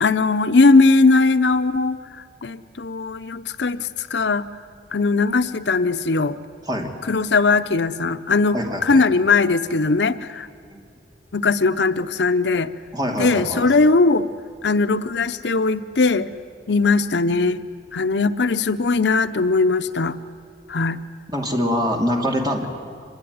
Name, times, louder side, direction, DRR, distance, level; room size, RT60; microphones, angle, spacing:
voice 1, 0.0-2.0 2.4-4.5 4.9-6.4 7.1-10.5 11.3-12.7 13.2-14.3 14.6-16.3 16.7-17.6 17.9-20.2 20.7-21.0, left 3 dB, 75° left, 12 dB, 0.8 m, -19 dB
voice 2, 8.5-9.1 10.7-10.8 12.9-13.7 21.3-22.7, equal, 25° right, 2 dB, 2.7 m, -24 dB
25.0 x 21.0 x 9.5 m, 2.2 s
head